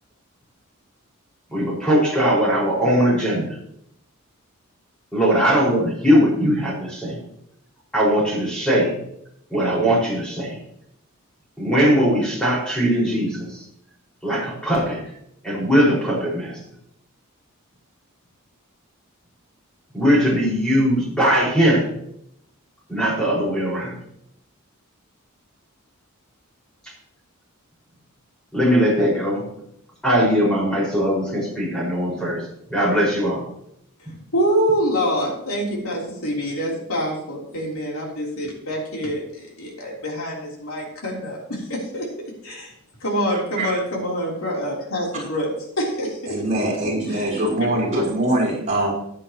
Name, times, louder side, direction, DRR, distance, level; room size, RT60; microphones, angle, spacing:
voice 1, 1.5-3.6 5.1-7.2 7.9-9.0 9.5-10.6 11.6-13.6 14.2-15.0 15.4-16.6 19.9-21.9 22.9-24.0 28.5-29.4 30.0-32.4 32.7-33.4, equal, 5° left, -5 dB, 5.3 m, -20 dB
voice 2, 34.3-42.1 42.4-42.7 43.0-45.5 45.8-46.4 47.1-47.3 47.9-48.1, equal, 75° left, -2 dB, 3.6 m, -25 dB
voice 3, 46.3-48.9, right 1 dB, 30° right, -6 dB, 5.2 m, -22 dB
14.5 x 9.8 x 3.0 m, 0.75 s
head